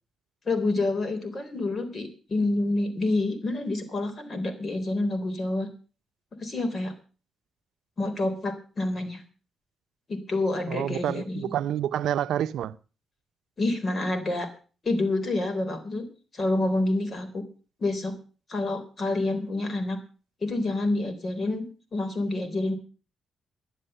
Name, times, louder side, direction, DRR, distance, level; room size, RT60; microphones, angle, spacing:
voice 1, 0.5-5.7 6.4-6.9 8.0-9.2 10.1-11.5 13.6-14.5 14.8-16.1 16.3-17.5 17.8-18.2 18.5-20.0 20.4-22.7, left 2 dB, 35° left, 3.6 m, -28 dB
voice 2, 10.7-12.8, right 10 dB, 85° right, 0.6 m, -28 dB
11.5 x 11.0 x 6.7 m
cardioid pair, 100°, 0 cm